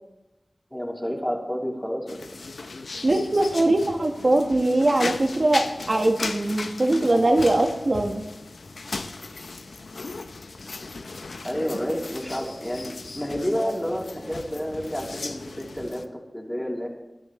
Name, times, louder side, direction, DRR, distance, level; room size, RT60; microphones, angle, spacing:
voice 1, 0.7-2.2 11.4-16.9, equal, 10° left, -1 dB, 3.1 m, -30 dB
sound 1, 2.1-16.1, left 3 dB, 90° left, 0.7 m, -37 dB
voice 2, 3.0-8.2, right 2 dB, 55° right, 4 dB, 1.4 m, -21 dB
21.0 x 11.0 x 3.2 m, 0.97 s
wide cardioid pair, 45°, 0 cm